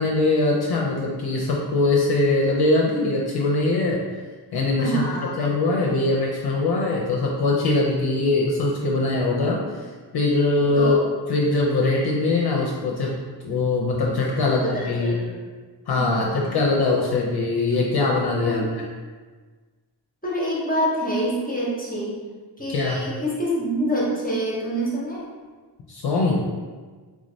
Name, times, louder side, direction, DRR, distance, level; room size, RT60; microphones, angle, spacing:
voice 1, 0.0-4.0 4.5-5.1 5.4-10.9 11.3-13.2 13.4-15.2 15.9-18.9 22.7-23.0 25.9-26.4, left 2 dB, 60° left, -2 dB, 0.5 m, -22 dB
voice 2, 4.8-5.4 10.7-11.0 14.4-15.3 16.0-16.5 18.4-18.7 20.2-22.2 22.6-25.3, right 1 dB, 20° left, -6 dB, 0.7 m, -26 dB
3.5 x 3.1 x 2.6 m, 1.4 s
wide cardioid pair, 145°, 44 cm